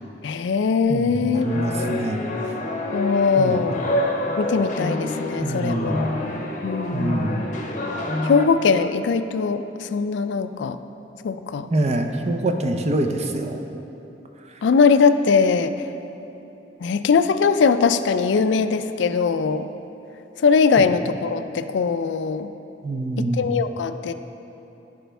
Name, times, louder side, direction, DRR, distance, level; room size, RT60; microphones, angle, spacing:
voice 1, 0.2-1.5 2.9-3.8 4.4-6.1 6.6-7.4 8.2-10.8 11.2-11.7 14.6-15.9 16.8-19.7 20.4-22.5 23.2-24.1, left 5 dB, 80° left, 11 dB, 0.3 m, -21 dB
voice 2, 0.9-2.2 3.4-3.6 5.4-6.0 6.9-7.4 11.7-13.6 20.8-20.9 22.8-23.5, right 1 dB, 40° right, 4 dB, 0.6 m, -25 dB
sound 1, 1.3-8.5, left 1 dB, 45° left, 0.7 m, -27 dB
14.5 x 5.1 x 3.4 m, 2.9 s
head